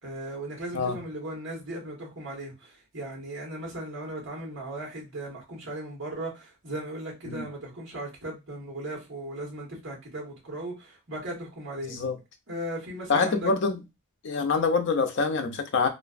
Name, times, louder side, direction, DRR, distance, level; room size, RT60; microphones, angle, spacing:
voice 1, 0.0-12.1 12.5-13.5, right 1 dB, 60° right, 1.1 m, -37 dB
voice 2, 13.1-13.8 14.2-15.9, left 4 dB, 55° left, 0.5 m, -25 dB
2.4 x 2.2 x 2.4 m
head